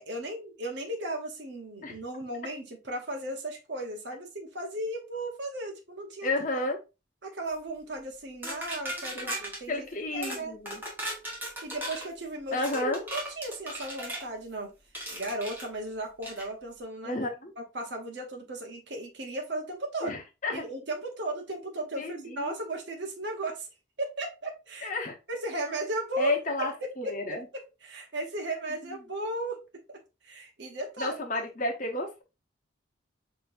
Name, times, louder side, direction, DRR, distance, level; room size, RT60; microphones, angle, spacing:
voice 1, 0.0-6.3 7.2-9.9 10.1-10.6 11.6-14.7 15.1-17.1 17.6-20.2 20.5-23.7 24.0-24.9 25.3-26.9 27.3-29.6 29.9-30.0 30.2-31.4, right 1 dB, 65° right, 2 dB, 1.0 m, -36 dB
voice 2, 6.2-6.8 9.1-9.3 9.7-10.8 12.5-13.0 17.0-17.5 20.0-20.6 22.0-22.6 24.8-25.2 26.2-27.5 28.9-29.0 31.0-32.2, left 2 dB, 40° left, 2 dB, 1.0 m, -31 dB
sound 1, 8.4-9.6 10.2-10.4 10.7-12.1 12.6-14.3 14.9-15.7 16.2-16.5, right 1 dB, 10° right, 1.2 m, -37 dB
5.9 x 3.0 x 2.6 m, 0.28 s
head